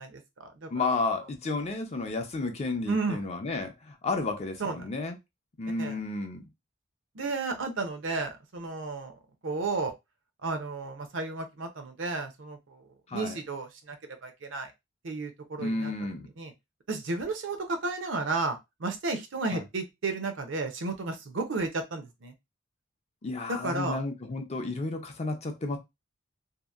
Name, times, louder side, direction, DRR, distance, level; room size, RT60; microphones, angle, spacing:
voice 1, 0.0-0.8 2.9-3.2 4.6-4.9 5.8-6.0 7.2-9.1 9.4-9.9 10.4-12.8 13.1-14.0 14.2-14.7 15.0-15.9 16.4-16.5 16.9-22.3 23.5-24.0, right 3 dB, 70° right, 0.6 m, -33 dB
voice 2, 0.7-5.2 5.6-6.5 13.1-13.4 15.6-16.3 19.5-19.6 23.2-25.8, left 3 dB, 35° left, 0.5 m, -32 dB
2.8 x 2.5 x 2.4 m
head